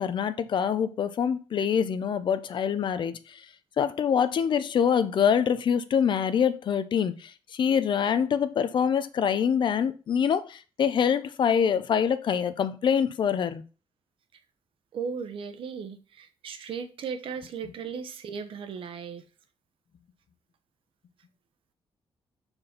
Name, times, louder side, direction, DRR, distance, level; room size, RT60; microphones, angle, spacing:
voice 1, 0.0-3.4 3.8-13.6, left 7 dB, 60° left, 0.7 m, -25 dB
voice 2, 14.9-19.2, right 6 dB, 70° right, 0.9 m, -36 dB
5.9 x 4.5 x 5.1 m
wide cardioid pair, 140°, 9 cm